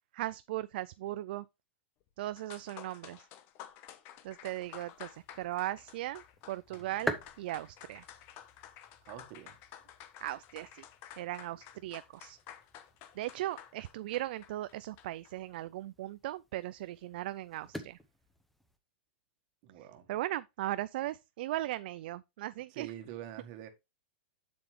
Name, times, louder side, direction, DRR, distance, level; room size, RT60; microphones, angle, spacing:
voice 1, 0.1-1.5 2.2-3.3 4.2-8.0 10.2-10.9 11.2-12.4 13.1-18.0 19.8-22.9, right 15 dB, 60° right, 0.3 m, -38 dB
sound 1, 2.1-2.2 2.4-15.3, left 11 dB, 40° left, 0.9 m, -52 dB
sound 2, 4.6-18.8, equal, ahead, 0.8 m, -47 dB
voice 2, 9.0-9.6 19.6-20.1 22.7-23.7, right 12 dB, 45° right, 1.6 m, -46 dB
7.4 x 6.9 x 3.2 m
supercardioid pair, 145°, 6 cm